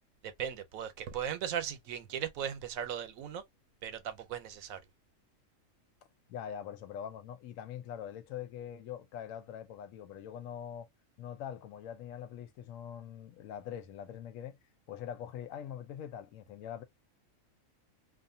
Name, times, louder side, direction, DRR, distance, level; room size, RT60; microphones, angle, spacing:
voice 1, 0.2-3.4 3.8-4.8, right 9 dB, 85° right, 1.1 m, -37 dB
voice 2, 6.3-10.9 11.2-14.6 14.9-16.8, left 9 dB, 75° left, 1.0 m, -43 dB
2.5 x 2.3 x 2.5 m
omnidirectional pair, 1.4 m